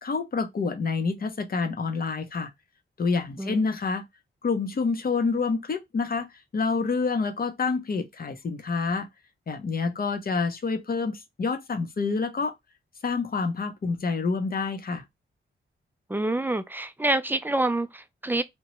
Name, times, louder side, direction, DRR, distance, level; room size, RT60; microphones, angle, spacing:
voice 1, 0.0-2.5 3.0-4.0 4.4-6.3 6.5-9.1 9.5-12.5 13.0-15.0, left 4 dB, 45° left, 0.6 m, -27 dB
voice 2, 3.4-3.7 16.1-18.4, right 2 dB, 10° right, 0.3 m, -27 dB
2.9 x 2.2 x 3.0 m
cardioid pair, 75°, 21 cm